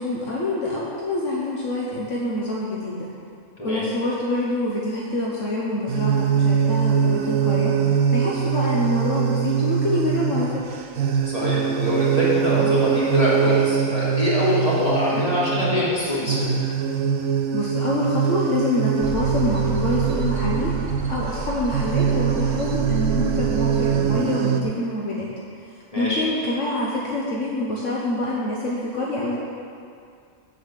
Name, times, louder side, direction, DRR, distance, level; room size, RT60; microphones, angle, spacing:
voice 1, 0.0-3.1 3.6-10.6 17.5-20.7 21.1-25.3 25.6-29.4, left 1 dB, 70° left, -4 dB, 1.5 m, -26 dB
sound 1, 5.9-24.6, right 7 dB, 90° right, 1.2 m, -23 dB
voice 2, 11.2-16.6 25.9-26.2, left 1 dB, 25° left, -9 dB, 3.2 m, -23 dB
sound 2, 19.0-24.0, right 6 dB, 35° right, 0.6 m, -30 dB
8.0 x 7.8 x 7.6 m, 2.3 s
omnidirectional pair, 1.3 m